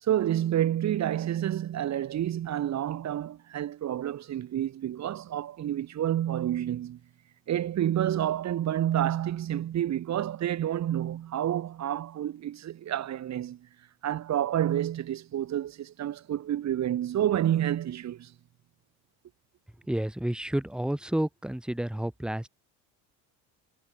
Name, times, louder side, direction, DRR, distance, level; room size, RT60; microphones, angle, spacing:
voice 1, 0.0-7.0 7.5-13.6 14.0-18.3, right 11 dB, 50° right, 4.6 m, -29 dB
voice 2, 19.9-22.5, right 1 dB, ahead, 1.1 m, -30 dB
supercardioid pair, 105°, 36 cm